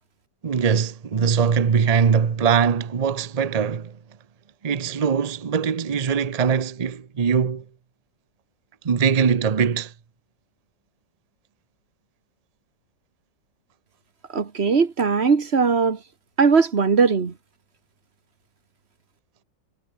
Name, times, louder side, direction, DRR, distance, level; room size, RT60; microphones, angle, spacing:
voice 1, 0.4-4.0 4.6-7.6 8.8-9.9, right 6 dB, 70° right, 0.3 m, -21 dB
voice 2, 14.3-16.0 16.4-17.3, right 5 dB, 35° right, 1.7 m, -19 dB
omnidirectional pair, 1.9 m